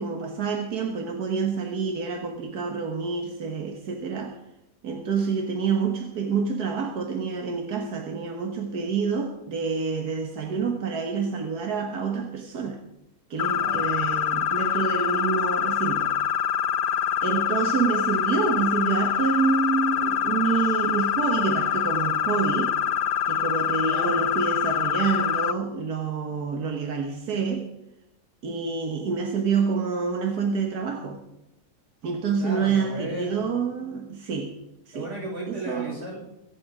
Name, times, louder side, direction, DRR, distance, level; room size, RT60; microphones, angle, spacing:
voice 1, 0.0-4.4 4.8-12.8 13.3-16.1 17.2-22.8 23.3-27.7 28.4-31.2 32.0-34.6 34.9-35.1 35.5-35.9, right 5 dB, 85° right, 3 dB, 1.8 m, -27 dB
sound 1, 13.4-25.5, left 9 dB, 65° left, 0.5 m, -25 dB
voice 2, 32.4-33.4 34.9-36.2, right 1 dB, 50° right, -3 dB, 5.8 m, -34 dB
23.0 x 8.7 x 4.9 m, 0.87 s
omnidirectional pair, 1.6 m